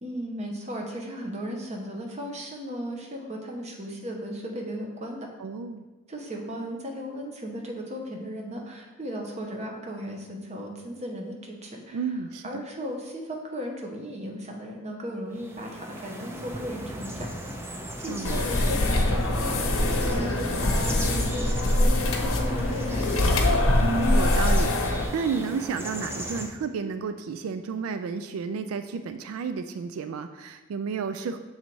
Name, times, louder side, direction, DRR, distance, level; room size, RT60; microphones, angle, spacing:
voice 1, 0.0-5.3 6.1-12.0 12.4-17.6 18.0-23.6, equal, 30° right, 1 dB, 0.9 m, -36 dB
voice 2, 5.4-5.9 11.9-12.6 18.1-18.5 23.8-31.4, right 5 dB, 85° right, 10 dB, 0.3 m, -32 dB
sound 1, 15.3-26.5, right 1 dB, 10° right, 0.5 m, -38 dB
sound 2, 18.2-25.0, left 1 dB, 90° left, 0.9 m, -23 dB
6.3 x 4.0 x 4.5 m, 1.2 s
head